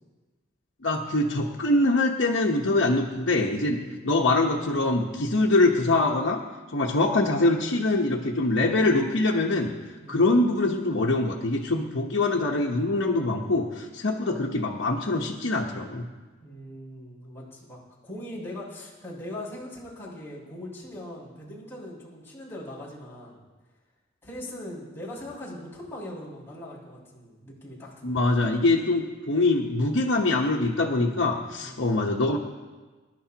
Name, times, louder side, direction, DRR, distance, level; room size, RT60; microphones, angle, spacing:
voice 1, 0.8-3.8 4.0-6.4 6.7-9.7 10.1-16.1 28.0-32.4, left 2 dB, 80° left, -2 dB, 1.1 m, -24 dB
voice 2, 3.8-4.1 10.0-10.2 16.4-23.4 24.2-28.3 31.6-31.9, left 1 dB, 15° left, -8 dB, 5.8 m, -40 dB
25.0 x 12.0 x 2.9 m, 1.3 s
head